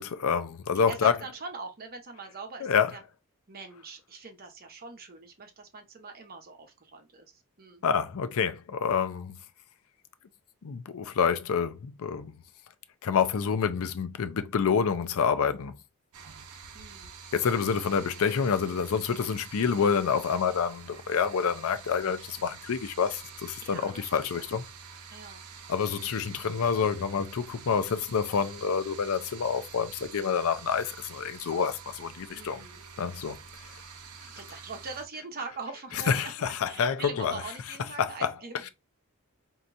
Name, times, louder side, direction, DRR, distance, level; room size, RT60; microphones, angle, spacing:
voice 1, 0.0-1.1 2.6-2.9 7.8-9.3 10.6-12.3 13.0-15.8 17.3-24.6 25.7-32.6 33.0-33.4 36.1-37.4 38.0-38.3, left 6 dB, 65° left, 0.5 m, -27 dB
voice 2, 0.9-3.0 3.5-7.8 16.7-17.1 23.6-24.5 25.1-25.4 32.3-32.8 34.4-36.3 36.7-38.7, right 4 dB, 45° right, 0.9 m, -42 dB
sound 1, 16.1-35.0, right 6 dB, 80° right, 0.7 m, -47 dB
4.4 x 2.8 x 2.5 m
head